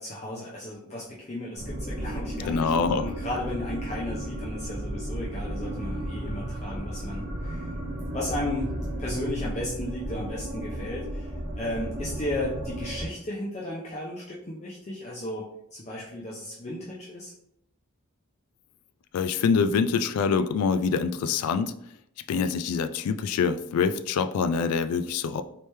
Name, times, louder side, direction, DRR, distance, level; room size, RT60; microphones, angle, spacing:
voice 1, 0.0-7.8 8.1-17.3, left 1 dB, 30° left, -5 dB, 0.5 m, -35 dB
sound 1, 1.5-13.1, right 1 dB, 35° right, 0.8 m, -34 dB
voice 2, 2.5-3.1 19.1-21.7 22.3-25.4, left 5 dB, 90° left, 13 dB, 0.3 m, -25 dB
3.2 x 2.9 x 3.2 m, 0.75 s
head